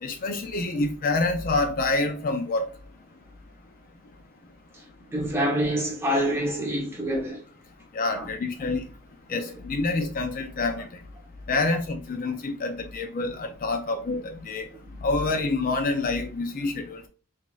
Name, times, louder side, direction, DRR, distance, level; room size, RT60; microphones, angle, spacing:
voice 1, 0.0-2.7 7.9-8.8 9.3-10.9 11.5-14.7 15.0-17.1, left 3 dB, 40° left, 0.4 m, -27 dB
voice 2, 5.1-7.4 8.2-8.3, equal, 10° right, 0.9 m, -26 dB
4.9 x 2.5 x 2.4 m
head